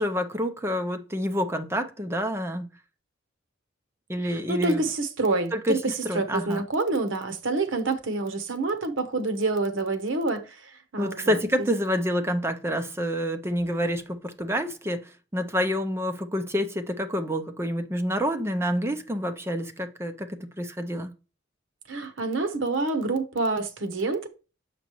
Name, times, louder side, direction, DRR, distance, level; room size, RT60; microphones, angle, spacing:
voice 1, 0.0-2.7 4.1-4.9 5.5-6.7 11.0-21.1, equal, 15° right, 0.6 m, -28 dB
voice 2, 4.3-5.8 6.1-11.4 21.9-24.3, right 3 dB, 75° right, 1.0 m, -27 dB
7.5 x 5.1 x 3.0 m
head